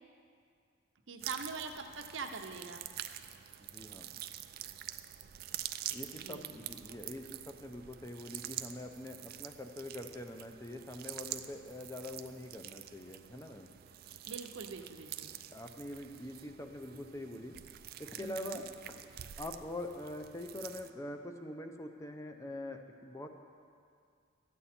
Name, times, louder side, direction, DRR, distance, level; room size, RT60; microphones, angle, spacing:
voice 1, 1.1-2.8 6.2-6.7 14.3-15.3 18.2-18.6, right 4 dB, 70° right, 5 dB, 0.7 m, -43 dB
sound 1, 1.2-20.9, right 12 dB, 50° right, 0.3 m, -46 dB
voice 2, 3.6-4.1 5.9-13.7 15.5-17.6 18.0-19.0 19.4-23.3, left 1 dB, 15° left, 5 dB, 0.5 m, -44 dB
12.5 x 8.4 x 4.3 m, 2.3 s
head